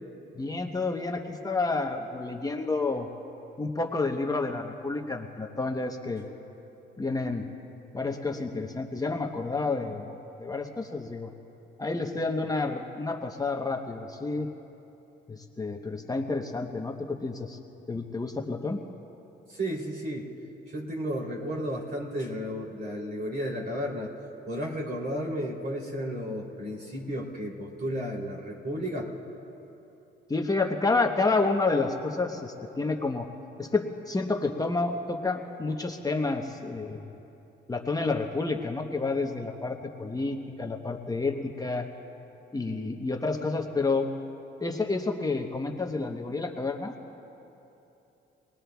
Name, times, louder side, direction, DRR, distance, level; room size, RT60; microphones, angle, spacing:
voice 1, 0.3-3.1 3.6-6.3 7.0-7.4 7.9-11.3 11.8-14.5 15.3-17.6 17.9-18.8 30.3-33.3 33.6-37.1 37.7-41.9 42.5-44.1 44.6-46.9, left 3 dB, 20° left, 2 dB, 0.9 m, -29 dB
voice 2, 19.5-20.3 20.7-24.1 24.5-29.1, equal, 55° right, -1 dB, 3.0 m, -33 dB
25.5 x 19.5 x 2.3 m, 3.0 s
cardioid pair, 90°, 20 cm